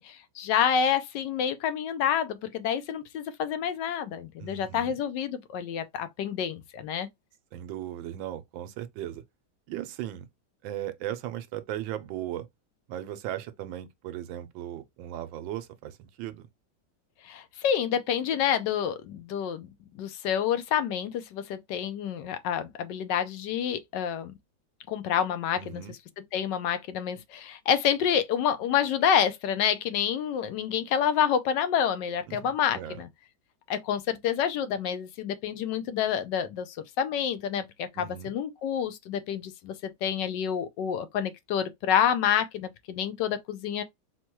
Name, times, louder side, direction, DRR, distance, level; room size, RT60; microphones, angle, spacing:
voice 1, 0.0-7.1 17.2-19.7 20.0-24.3 24.9-25.8 26.3-33.1 33.7-43.8, left 8 dB, 75° left, 1.2 m, -28 dB
voice 2, 4.4-5.0 7.5-9.2 9.7-10.3 10.6-12.5 12.9-16.5 25.6-25.9 32.3-33.0 37.9-38.3, right 12 dB, 90° right, 1.4 m, -37 dB
4.3 x 2.2 x 4.5 m
omnidirectional pair, 2.1 m